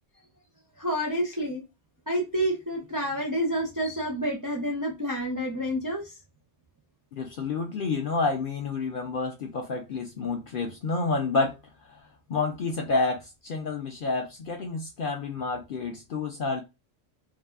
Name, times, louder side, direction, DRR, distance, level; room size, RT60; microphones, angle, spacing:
voice 1, 0.8-1.6 2.1-6.1, equal, 35° right, 0.3 m, -29 dB
voice 2, 7.2-11.5 12.3-16.6, left 3 dB, 60° left, 0.6 m, -29 dB
2.6 x 2.5 x 2.3 m
omnidirectional pair, 1.2 m